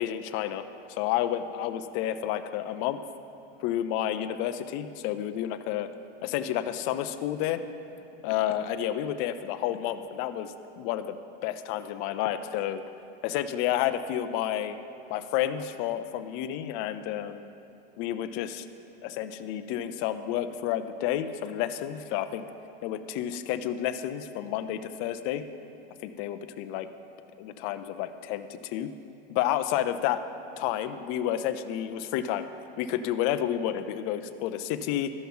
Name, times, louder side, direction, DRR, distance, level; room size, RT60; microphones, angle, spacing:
voice 1, 0.0-3.0 3.6-5.9 6.2-7.6 8.2-11.2 11.4-12.8 13.2-14.8 15.1-17.4 18.0-18.7 19.0-22.5 22.8-25.4 26.0-26.9 27.4-28.9 29.3-30.2 30.6-32.5 32.8-35.1, left 11 dB, 45° left, 9 dB, 0.5 m, -30 dB
13.0 x 5.8 x 5.4 m, 2.7 s
supercardioid pair, 135°, 30 cm